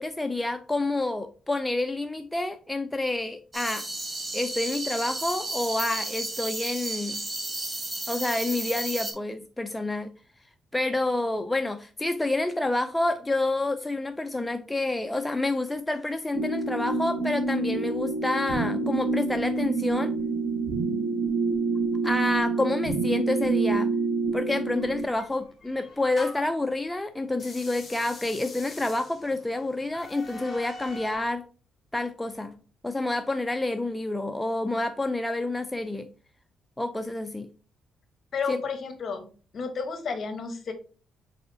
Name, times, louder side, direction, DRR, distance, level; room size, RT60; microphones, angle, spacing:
voice 1, 0.0-3.9 4.3-7.2 8.1-10.1 10.7-20.1 22.0-23.9 24.3-31.5 31.9-32.5 32.8-36.1 36.8-37.5 38.5-38.6, left 2 dB, 10° left, 7 dB, 0.3 m, -28 dB
sound 1, 3.5-9.1, right 2 dB, 25° right, 0.9 m, -33 dB
sound 2, 16.3-25.0, right 3 dB, 70° right, 1.4 m, -27 dB
sound 3, 24.8-26.6 27.3-31.3, left 2 dB, 30° left, 1.2 m, -44 dB
voice 2, 38.3-39.3 39.5-40.7, left 5 dB, 50° left, 8 dB, 0.9 m, -31 dB
4.7 x 3.7 x 2.7 m, 0.37 s
cardioid pair, 90°, 0 cm